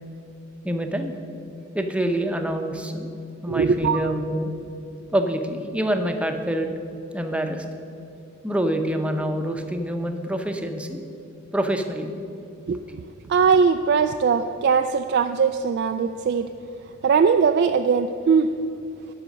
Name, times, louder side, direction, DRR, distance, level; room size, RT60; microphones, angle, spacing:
voice 1, 0.6-1.1 1.7-3.2 3.4-4.5 5.1-6.7 7.1-7.6 8.4-11.0 11.5-12.1, right 1 dB, 5° right, 5 dB, 0.7 m, -26 dB
voice 2, 3.5-4.0 12.7-12.8 13.3-16.5 17.0-18.5, right 6 dB, 55° right, 7 dB, 0.3 m, -20 dB
13.0 x 5.6 x 6.3 m, 2.7 s
head